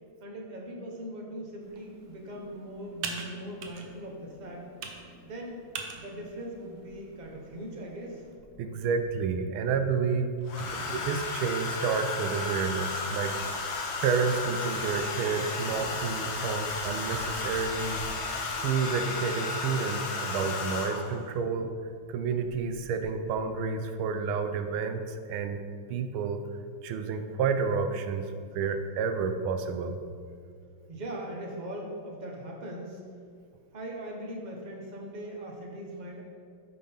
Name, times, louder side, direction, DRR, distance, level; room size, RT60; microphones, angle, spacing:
voice 1, 0.2-4.9 5.2-5.6 5.9-8.2 10.6-11.0 30.9-33.0 33.7-36.2, right 1 dB, 45° right, -1 dB, 0.6 m, -40 dB
Computer keyboard, 1.6-8.4, right 5 dB, 70° right, 1.4 m, -44 dB
Domestic sounds home sounds, 6.8-6.9 8.4-9.0 10.5-21.2 22.4-22.7 23.0-23.3, left 3 dB, 70° left, 1.6 m, -33 dB
voice 2, 8.6-10.3 10.7-13.3 14.0-18.0 18.6-21.7 22.1-25.6 25.9-26.4 26.8-28.3 28.5-30.0, right 5 dB, 90° right, 8 dB, 1.5 m, -30 dB
8.3 x 3.9 x 5.4 m, 2.2 s
omnidirectional pair, 2.2 m